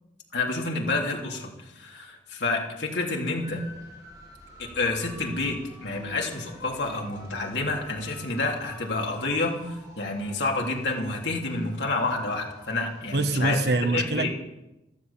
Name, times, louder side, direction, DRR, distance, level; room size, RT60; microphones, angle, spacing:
voice 1, 0.3-3.6 4.6-13.6 13.9-14.3, left 3 dB, 75° left, 0 dB, 3.3 m, -29 dB
sound 1, 3.4-13.4, right 1 dB, 20° right, 5.9 m, -48 dB
voice 2, 13.1-14.3, right 2 dB, 65° right, 7 dB, 1.4 m, -24 dB
14.0 x 13.5 x 7.2 m, 0.96 s
head